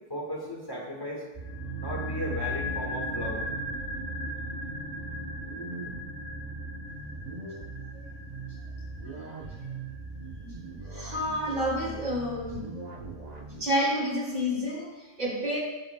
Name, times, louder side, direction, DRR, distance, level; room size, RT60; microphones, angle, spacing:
voice 1, 0.1-1.2 1.8-3.4, equal, 20° left, -3 dB, 1.7 m, -35 dB
sound 1, 1.3-13.6, right 3 dB, 40° right, 1.0 m, -40 dB
sound 2, 1.4-11.6 11.9-12.0, left 1 dB, 80° right, 3.6 m, -38 dB
voice 2, 10.9-12.7 13.6-15.6, equal, 55° right, -6 dB, 3.8 m, -29 dB
19.5 x 7.1 x 2.3 m, 1.1 s
omnidirectional pair, 1.1 m